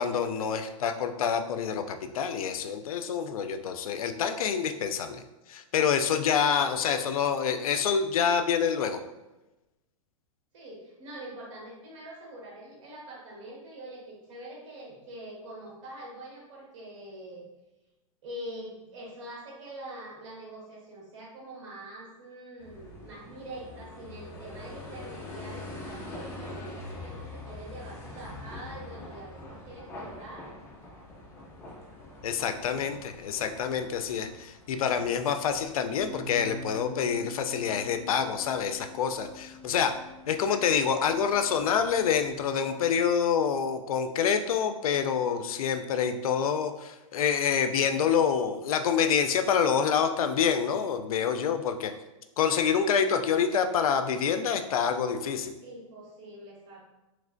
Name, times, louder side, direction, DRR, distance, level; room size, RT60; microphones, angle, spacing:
voice 1, 0.0-5.2 5.5-9.0 32.2-39.9 40.3-51.9 52.4-55.5, left 7 dB, 80° left, 8 dB, 0.4 m, -27 dB
voice 2, 10.5-17.5 18.2-30.5 55.6-56.8, right 1 dB, 60° right, -3 dB, 1.5 m, -44 dB
sound 1, 22.6-42.4, left 2 dB, 15° left, 0.5 m, -45 dB
sound 2, 36.0-42.2, left 1 dB, 55° left, 0.9 m, -45 dB
3.2 x 3.1 x 2.5 m, 1.0 s
hypercardioid pair, 140°, 18 cm